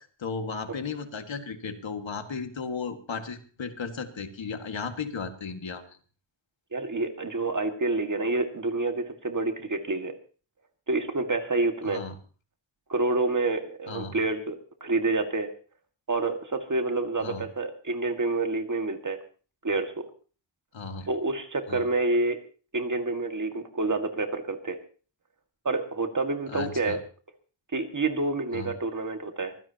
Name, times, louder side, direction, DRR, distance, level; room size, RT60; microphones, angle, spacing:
voice 1, 0.2-6.0 11.8-12.2 13.9-14.2 17.2-17.5 20.7-21.1 21.7-21.8 26.5-27.0 28.5-28.7, left 5 dB, 70° left, 7 dB, 1.9 m, -35 dB
voice 2, 6.7-10.1 10.9-12.0 12.9-15.5 16.1-19.2 19.6-20.1 21.1-22.4 22.7-24.8 25.7-27.0 27.7-29.7, right 3 dB, 40° right, 6 dB, 1.9 m, -28 dB
24.0 x 15.5 x 2.9 m, 0.38 s
wide cardioid pair, 115°, 47 cm